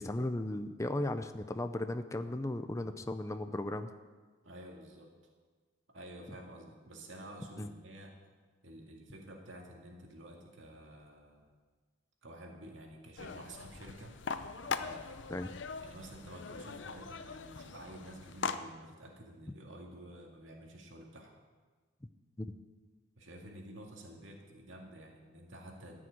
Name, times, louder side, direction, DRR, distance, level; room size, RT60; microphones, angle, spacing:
voice 1, 0.0-3.9 7.6-7.7 15.3-15.5 22.4-22.5, left 1 dB, 15° left, 9 dB, 0.5 m, -36 dB
voice 2, 4.4-5.1 5.9-8.2 8.6-11.5 12.2-14.2 14.7-15.3 15.8-21.3 23.2-26.0, right 1 dB, 85° right, 1 dB, 2.1 m, -50 dB
sound 1, 13.2-18.6, left 5 dB, 70° left, 0.7 m, -41 dB
14.0 x 6.4 x 9.1 m, 1.4 s
head